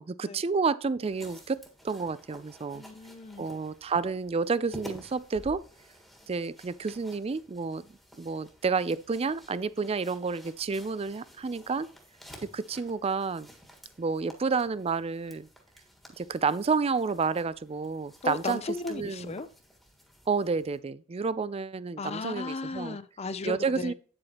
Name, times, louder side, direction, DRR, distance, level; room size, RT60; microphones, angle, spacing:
voice 1, 0.0-2.8 3.4-5.6 6.3-7.9 8.2-11.9 12.4-13.5 14.0-15.5 16.2-18.6 18.9-19.3 20.3-23.0 23.4-23.9, right 4 dB, 30° right, 0.4 m, -30 dB
sound 1, 1.0-20.8, equal, ahead, 1.6 m, -52 dB
voice 2, 2.7-3.5 18.2-19.5 22.0-23.9, left 3 dB, 30° left, 0.5 m, -35 dB
9.0 x 7.7 x 2.9 m
head